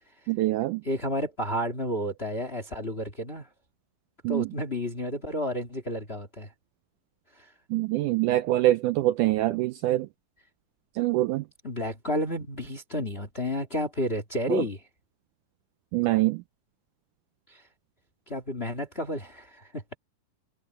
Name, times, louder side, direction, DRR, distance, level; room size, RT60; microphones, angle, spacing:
voice 1, 0.3-0.8 4.2-4.5 7.7-10.1 11.0-11.4 14.5-14.6 15.9-16.4, right 16 dB, 85° right, 1.8 m, -24 dB
voice 2, 0.8-3.5 4.3-6.5 7.4-7.5 11.6-14.8 17.5-17.6 18.3-19.8, left 1 dB, 25° left, 1.4 m, -31 dB
omnidirectional pair, 4.2 m